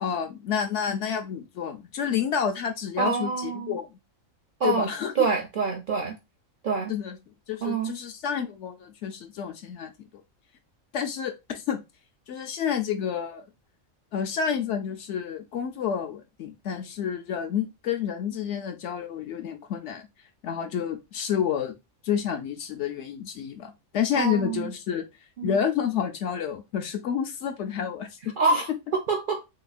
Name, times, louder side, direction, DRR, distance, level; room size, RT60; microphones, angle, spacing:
voice 1, 0.0-3.9 4.6-5.3 6.9-7.2 7.5-9.9 10.9-11.8 12.3-13.5 14.1-20.1 20.4-21.8 22.0-25.0 25.4-28.3 28.7-28.8, left 8 dB, 70° left, 0.8 m, -29 dB
voice 2, 3.0-3.7 4.6-4.9 5.2-6.1 6.6-6.9 7.6-7.9 24.2-24.7 25.4-25.5 28.4-29.4, right 4 dB, 60° right, 0.5 m, -26 dB
3.3 x 2.9 x 2.3 m
omnidirectional pair, 1.4 m